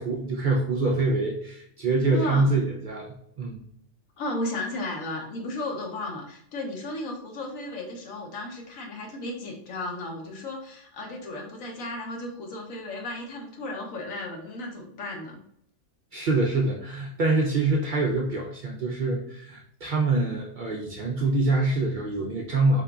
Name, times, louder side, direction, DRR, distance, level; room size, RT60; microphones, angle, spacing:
voice 1, 0.0-3.6 16.1-22.8, right 3 dB, 55° right, -2 dB, 0.5 m, -25 dB
voice 2, 2.1-2.5 4.2-15.4, left 1 dB, 85° left, 1 dB, 1.3 m, -34 dB
3.7 x 3.7 x 2.3 m, 0.70 s
omnidirectional pair, 1.4 m